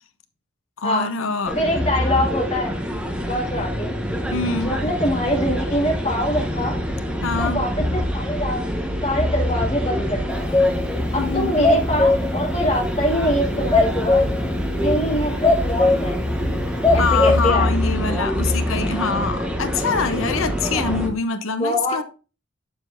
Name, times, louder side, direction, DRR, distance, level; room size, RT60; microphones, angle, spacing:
voice 1, 0.8-1.6 4.3-4.7 7.2-7.6 11.2-11.5 16.9-22.0, left 4 dB, 80° left, 0.8 m, -24 dB
sound 1, 1.4-21.1, equal, 5° right, 0.9 m, -25 dB
voice 2, 1.6-2.8 3.3-3.9 4.6-6.8 7.4-8.6 9.0-10.5 11.1-14.2 14.8-16.2 16.9-17.7 21.6-22.0, equal, 30° left, 2.1 m, -24 dB
sound 2, 10.3-10.9 11.3-11.4 11.6-12.4 13.7-14.5 15.4-16.2 16.8-17.5, left 3 dB, 15° left, 0.5 m, -18 dB
7.6 x 7.0 x 2.6 m
head